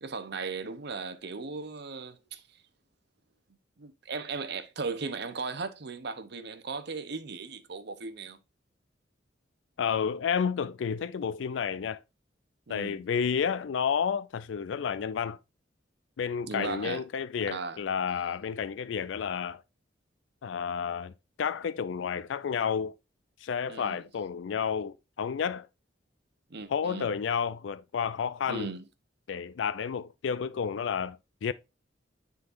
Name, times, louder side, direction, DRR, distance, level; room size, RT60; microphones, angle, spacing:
voice 1, 0.0-2.4 3.8-8.4 12.7-13.0 16.5-17.0 17.5-17.8 23.7-24.0 26.5-27.1 28.5-28.9, right 4 dB, 65° right, 0.8 m, -37 dB
voice 2, 9.8-12.0 12.7-15.4 16.2-19.6 20.4-21.1 21.4-22.9 23.4-25.7 26.7-28.7 29.3-31.5, left 7 dB, 75° left, 0.4 m, -31 dB
9.5 x 4.0 x 2.6 m
head